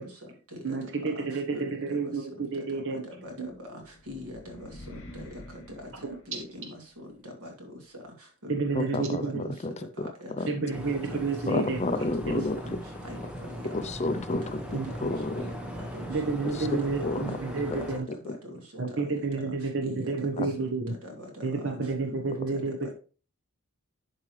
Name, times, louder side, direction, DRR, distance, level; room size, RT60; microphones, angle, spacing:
voice 1, 0.6-3.0 3.4-3.5 6.0-6.2 8.5-9.5 10.5-11.8 12.3-12.4 14.7-14.9 16.1-18.1 18.8-20.9 21.4-22.9, right 4 dB, 55° right, 4 dB, 1.1 m, -30 dB
voice 2, 1.5-2.0 2.4-2.5 3.2-3.3 4.1-4.7 4.9-5.4 6.3-6.7 7.2-7.5 8.4-8.7 9.0-9.5 10.2-10.3 10.6-11.2 11.5-11.6 12.3-12.8 13.0-13.2 15.0-15.1 15.4-15.6 15.9-16.1 16.6-16.9 17.5-17.6 18.2-18.3 19.8-20.4 21.2-21.3 22.0-22.2 22.6-22.7, left 1 dB, 85° right, 1 dB, 2.6 m, -42 dB
sound 1, 3.4-6.9, left 1 dB, 60° left, 2.4 m, -47 dB
voice 3, 8.7-9.7 10.4-10.5 11.5-12.6 13.7-14.6 15.0-15.4 16.7-17.4 17.7-17.8 18.3-18.4 20.4-20.5, left 2 dB, 30° left, 10 dB, 0.5 m, -30 dB
sound 2, 10.7-18.0, equal, 5° right, 1.1 m, -39 dB
11.0 x 4.7 x 3.2 m, 0.37 s
head